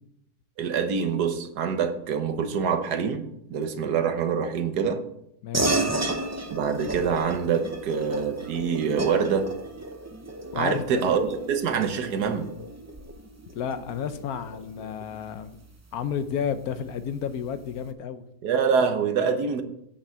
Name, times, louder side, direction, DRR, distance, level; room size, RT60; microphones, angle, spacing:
voice 1, 0.6-5.0 6.5-9.5 10.5-12.5 18.4-19.6, right 6 dB, 80° right, 1.6 m, -25 dB
voice 2, 5.4-5.9 10.5-11.0 13.5-15.5 15.9-18.2, left 8 dB, 70° left, 1.1 m, -31 dB
sound 1, 5.5-15.4, right 2 dB, 25° right, 0.3 m, -33 dB
8.8 x 5.9 x 7.5 m
omnidirectional pair, 1.7 m